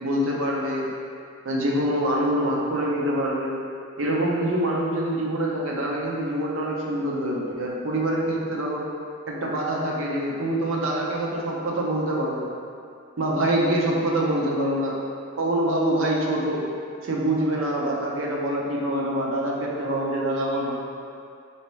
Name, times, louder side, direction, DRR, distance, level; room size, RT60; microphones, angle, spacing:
voice 1, 0.0-0.9 1.4-3.5 4.0-8.8 9.3-12.5 13.2-15.0 15.3-16.6 17.0-20.7, right 1 dB, 65° right, -3 dB, 0.6 m, -25 dB
4.4 x 2.8 x 3.1 m, 2.4 s
head